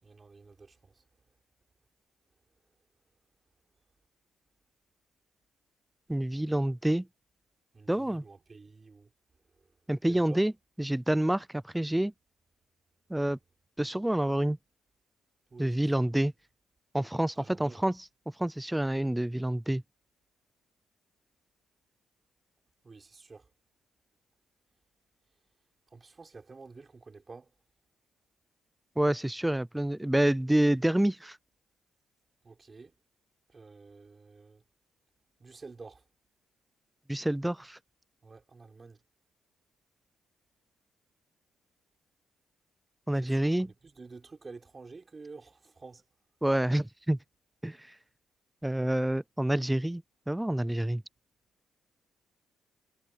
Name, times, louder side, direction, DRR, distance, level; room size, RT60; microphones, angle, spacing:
voice 1, 0.0-1.0 6.3-6.5 7.7-9.1 9.5-9.7 10.1-10.4 15.5-16.1 17.4-17.9 22.8-23.5 25.9-27.5 32.4-32.9 33.5-34.6 35.4-36.1 38.2-39.0 43.1-46.0, right 4 dB, 30° right, 4.6 m, -50 dB
voice 2, 6.1-7.1 7.9-8.2 9.9-10.5 10.8-12.1 13.1-13.4 13.8-14.6 15.6-16.3 16.9-18.0 18.4-19.8 29.0-31.4 37.1-37.8 43.1-43.7 46.4-47.2 47.6-47.8 48.6-51.0, right 1 dB, 5° right, 0.4 m, -28 dB
cardioid pair, 90°, 0 cm